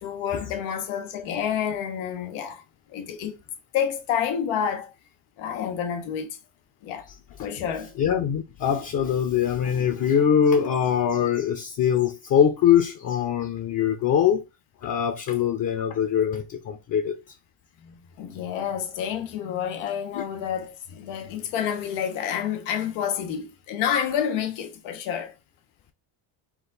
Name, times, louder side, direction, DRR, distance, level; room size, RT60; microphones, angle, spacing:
voice 1, 0.0-2.6 2.9-3.3 3.7-4.9 5.4-6.3 6.8-7.1 7.4-7.9 17.8-25.3, left 8 dB, 90° left, 1.2 m, -29 dB
voice 2, 8.0-14.4 14.8-17.2 20.1-20.2, left 8 dB, 45° left, 0.8 m, -23 dB
4.6 x 2.6 x 3.9 m
cardioid pair, 120°, 47 cm